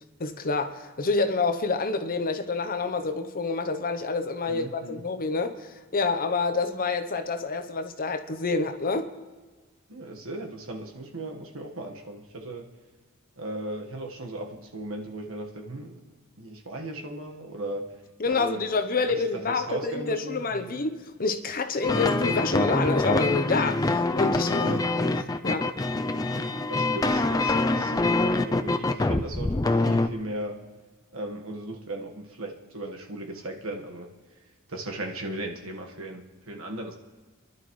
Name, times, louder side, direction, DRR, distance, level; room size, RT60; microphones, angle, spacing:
voice 1, 0.2-9.1 18.2-24.8 25.4-25.9, left 4 dB, 40° left, 9 dB, 0.8 m, -28 dB
voice 2, 4.5-5.0 9.9-12.7 13.4-16.0 16.4-17.9 18.2-18.7 19.1-20.8 24.6-24.9 26.7-30.6 31.1-34.1 34.7-36.9, right 1 dB, 65° right, 2 dB, 1.5 m, -37 dB
sound 1, 21.8-30.1, left 2 dB, 15° left, 0.4 m, -25 dB
28.5 x 11.5 x 3.2 m, 1.3 s
head